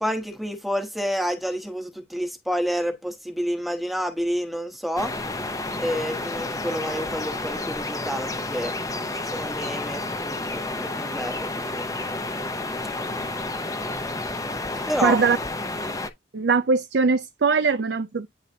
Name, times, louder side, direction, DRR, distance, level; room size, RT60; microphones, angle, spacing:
voice 1, 0.0-5.1 5.8-8.7 9.1-11.9 14.9-15.2, equal, ahead, 1.1 m, -29 dB
sound 1, 5.0-16.1, left 2 dB, 20° left, 0.7 m, -30 dB
voice 2, 15.0-15.4 16.3-18.3, right 4 dB, 60° right, 0.5 m, -21 dB
9.5 x 4.0 x 2.7 m
head